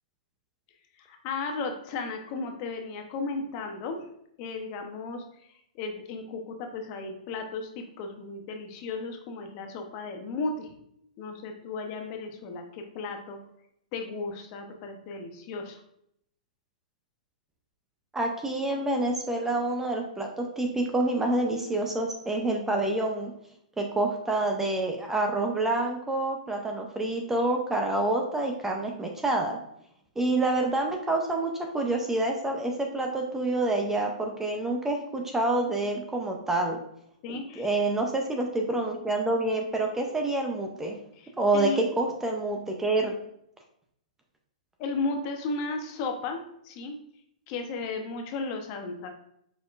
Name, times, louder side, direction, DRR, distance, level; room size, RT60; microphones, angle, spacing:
voice 1, 1.0-4.1 4.4-5.2 5.8-10.7 11.2-13.4 13.9-15.8 37.2-37.8 41.2-41.9 44.8-47.0 47.5-49.1, left 3 dB, 40° left, 4 dB, 0.8 m, -35 dB
voice 2, 18.1-23.3 23.8-29.6 30.2-36.8 37.3-41.0 41.4-43.1, right 2 dB, 10° right, 1 dB, 0.5 m, -27 dB
4.8 x 4.1 x 2.4 m, 0.73 s
hypercardioid pair, 135°, 4 cm